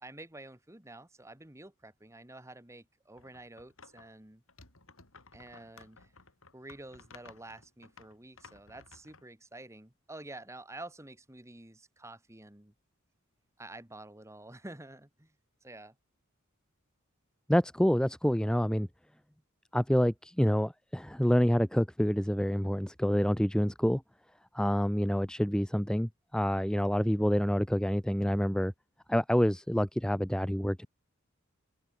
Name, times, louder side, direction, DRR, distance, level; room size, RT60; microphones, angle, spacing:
voice 1, 0.0-4.4 5.3-6.1 6.5-12.7 13.6-15.3 15.6-16.0, right 2 dB, 15° right, 2.0 m, -49 dB
sound 1, 3.2-4.1 4.5-9.2, left 4 dB, 85° left, 5.0 m, -56 dB
voice 2, 17.5-18.9 19.7-24.0 24.5-28.7 29.1-30.9, equal, 5° left, 0.7 m, -27 dB
head